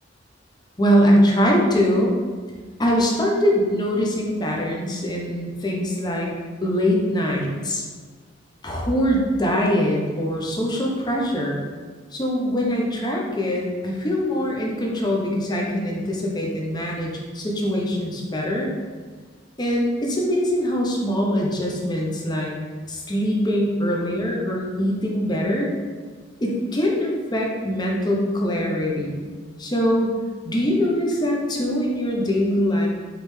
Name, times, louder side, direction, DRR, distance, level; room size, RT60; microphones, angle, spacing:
voice 1, 0.8-2.1 2.8-6.3 6.6-7.8 8.6-11.6 12.1-18.7 19.6-22.6 22.9-25.7 26.4-29.2 29.6-30.2 30.4-32.9, equal, 20° left, -2 dB, 0.7 m, -22 dB
5.0 x 3.2 x 3.2 m, 1.5 s
head